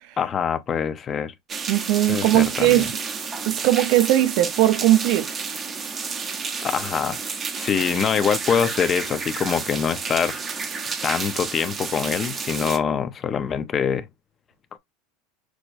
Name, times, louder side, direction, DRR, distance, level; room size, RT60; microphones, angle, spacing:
voice 1, 0.2-1.3 2.1-2.9 6.6-7.2 7.6-10.4 11.0-14.1 14.7-14.8, left 7 dB, 30° left, 0.6 m, -24 dB
sound 1, 1.5-12.8, right 5 dB, 30° right, 0.8 m, -31 dB
voice 2, 1.7-3.0 3.5-5.3, right 14 dB, 65° right, 0.7 m, -19 dB
6.1 x 2.2 x 2.6 m
supercardioid pair, 120°, 0 cm